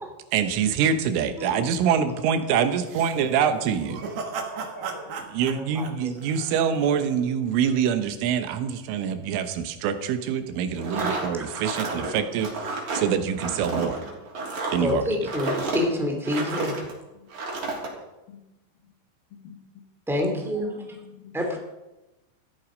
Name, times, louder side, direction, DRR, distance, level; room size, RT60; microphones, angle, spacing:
voice 1, 0.3-4.0 5.3-14.0 14.7-15.1, right 7 dB, 80° right, 9 dB, 3.5 m, -25 dB
voice 2, 1.2-1.7 3.8-4.0 6.7-6.8 10.5-11.0 11.9-12.2 14.4-14.5 16.3-17.3 18.3-18.4 18.8-18.9 19.3-19.6 20.7-21.4, left 8 dB, 60° left, 2 dB, 3.0 m, -49 dB
sound 1, 2.9-7.0, right 5 dB, 60° right, 2.8 m, -36 dB
voice 3, 3.9-5.2 20.1-20.8, right 1 dB, 80° left, 0 dB, 0.6 m, -44 dB
voice 4, 5.5-6.1 10.9-11.2 14.8-16.7 20.1-20.7 21.3-21.6, left 1 dB, ahead, 1 dB, 1.0 m, -27 dB
sound 2, 10.8-16.9 17.3-17.9, right 3 dB, 40° right, 4.1 m, -31 dB
17.0 x 13.0 x 5.2 m, 1.0 s
omnidirectional pair, 5.8 m